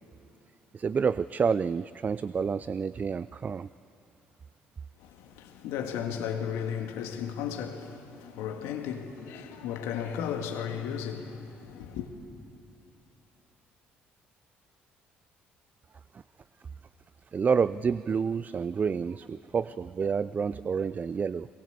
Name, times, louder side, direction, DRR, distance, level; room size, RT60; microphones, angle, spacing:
voice 1, 0.7-3.7 17.3-21.5, right 6 dB, 35° right, 0.4 m, -28 dB
voice 2, 5.0-12.1, left 8 dB, 80° left, 2.0 m, -35 dB
22.0 x 22.0 x 8.2 m
hypercardioid pair, 60°, 5 cm